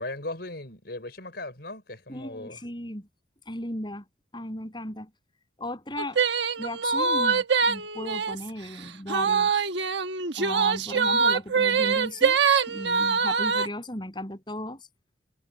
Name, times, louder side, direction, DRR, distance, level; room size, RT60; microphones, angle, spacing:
voice 1, 0.0-2.6, left 2 dB, 60° left, 5.3 m, -37 dB
voice 2, 2.1-3.1 3.5-4.0 4.3-5.1 5.6-6.2 6.6-9.6 10.4-12.4 12.7-14.8, left 1 dB, 25° left, 8.0 m, -36 dB
sound 1, 6.0-8.5 9.1-13.7, right 5 dB, 70° right, 1.3 m, -24 dB
head